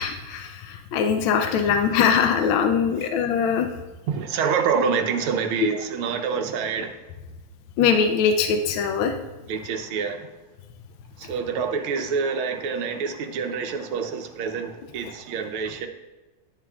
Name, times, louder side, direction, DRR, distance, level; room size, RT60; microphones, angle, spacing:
voice 1, 0.0-3.7 5.6-5.7 7.8-9.1, left 6 dB, 75° left, 5 dB, 1.4 m, -22 dB
voice 2, 4.1-7.0 9.5-10.3 11.2-15.9, right 6 dB, 85° right, 6 dB, 1.6 m, -27 dB
9.6 x 9.2 x 2.4 m, 1.2 s
omnidirectional pair, 2.3 m